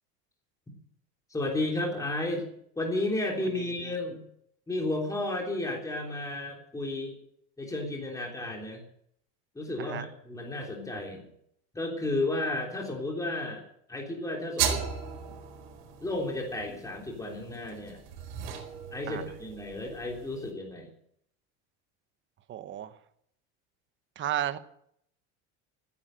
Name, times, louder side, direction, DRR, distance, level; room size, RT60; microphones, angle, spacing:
voice 1, 1.3-2.5 2.8-4.2 4.7-7.2 7.6-8.8 9.5-11.2 11.7-13.6 13.9-14.8 16.0-18.0 18.9-20.9, left 2 dB, 10° left, 0 dB, 3.4 m, -32 dB
sound 1, 14.6-20.5, right 8 dB, 80° right, 4.7 m, -36 dB
voice 2, 22.5-22.9 24.2-24.6, right 11 dB, 35° right, 12 dB, 1.1 m, -33 dB
15.5 x 9.9 x 7.7 m, 0.70 s
cardioid pair, 140°, 35 cm